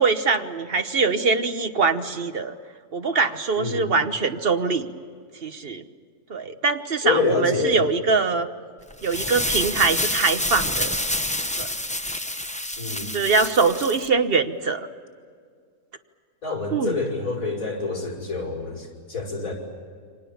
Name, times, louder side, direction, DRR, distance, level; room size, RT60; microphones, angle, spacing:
voice 1, 0.0-2.5 2.9-4.9 5.4-5.8 6.3-8.5 9.0-10.9 11.6-11.7 13.1-14.9 16.7-17.0, right 4 dB, 40° right, 8 dB, 1.3 m, -23 dB
voice 2, 3.6-4.0 7.0-7.8 12.8-13.1 16.4-19.5, left 4 dB, 65° left, -2 dB, 6.2 m, -27 dB
sound 1, 8.9-14.1, left 1 dB, 5° left, 0.7 m, -28 dB
29.5 x 25.0 x 7.2 m, 2.1 s
omnidirectional pair, 1.6 m